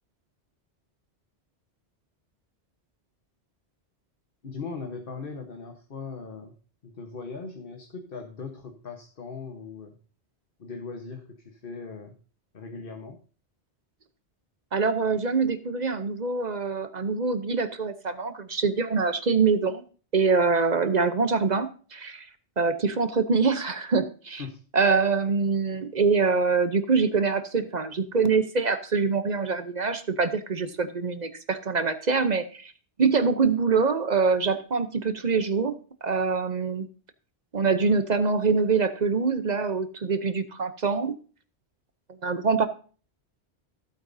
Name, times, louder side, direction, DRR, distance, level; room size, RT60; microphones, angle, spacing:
voice 1, 4.4-6.5 6.8-10.0 10.6-12.1 12.5-13.2 24.4-24.6, left 4 dB, 55° left, 4 dB, 1.3 m, -39 dB
voice 2, 14.7-19.8 20.1-22.3 22.6-24.4 24.7-32.7 33.0-35.7 36.0-36.9 37.5-41.1 42.2-42.7, right 4 dB, 45° right, 10 dB, 0.8 m, -24 dB
15.0 x 8.9 x 2.7 m, 0.38 s
omnidirectional pair, 1.1 m